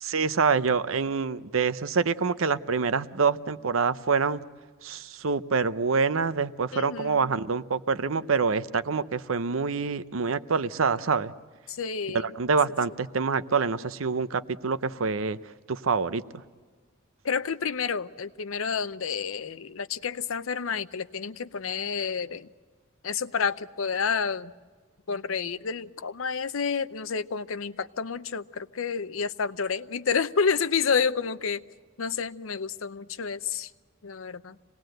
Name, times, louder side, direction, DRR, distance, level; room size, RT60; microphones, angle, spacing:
voice 1, 0.0-4.4 4.8-11.3 12.1-15.4 15.7-16.4, right 5 dB, 85° right, 14 dB, 0.7 m, -26 dB
voice 2, 6.7-7.4 11.7-12.3 17.2-22.5 23.0-24.5 25.1-31.6 32.0-33.7 34.0-34.6, left 6 dB, 85° left, 14 dB, 0.7 m, -29 dB
26.0 x 19.5 x 7.8 m, 1.5 s
head